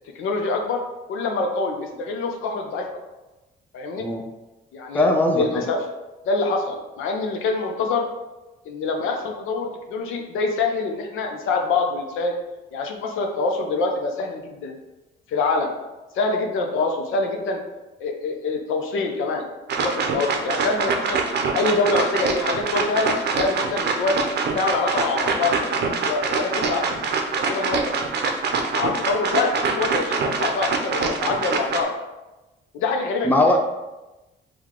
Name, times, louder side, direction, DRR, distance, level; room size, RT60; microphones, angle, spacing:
voice 1, 0.1-0.8 1.1-2.9 3.7-4.0 4.7-5.1 5.3-5.8 6.3-8.1 8.7-12.3 12.7-14.8 15.3-15.7 16.1-17.6 18.0-19.5 19.8-21.2 21.5-24.2 24.5-25.5 26.1-26.9 27.4-28.0 28.7-31.9 32.7-33.5, left 3 dB, 90° left, 2 dB, 0.6 m, -25 dB
voice 2, 4.9-5.6 33.2-33.6, left 1 dB, 10° left, 2 dB, 0.5 m, -19 dB
sound 1, 19.7-31.8, right 4 dB, 60° right, 0.6 m, -24 dB
4.7 x 2.3 x 3.6 m, 1.1 s
cardioid pair, 90°, 20 cm